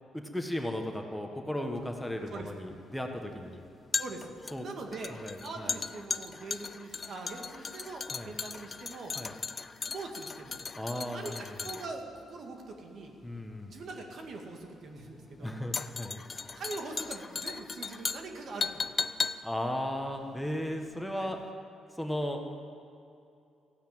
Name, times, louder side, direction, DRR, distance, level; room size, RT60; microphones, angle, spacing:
voice 1, 0.1-3.6 4.5-4.7 5.2-5.8 8.1-8.3 9.1-9.3 10.8-11.8 13.2-13.8 15.4-16.2 19.4-21.4 22.0-22.6, left 1 dB, 5° left, 3 dB, 1.4 m, -36 dB
sound 1, 1.8-21.1 21.3-21.5, left 5 dB, 35° left, 0.4 m, -38 dB
voice 2, 4.0-4.3 4.6-5.1 5.4-9.1 9.8-10.6 11.1-13.1 13.7-15.5 16.5-18.9 21.1-21.3, right 3 dB, 60° right, 3 dB, 2.0 m, -42 dB
15.0 x 9.3 x 8.8 m, 2.6 s
cardioid pair, 90°, 0 cm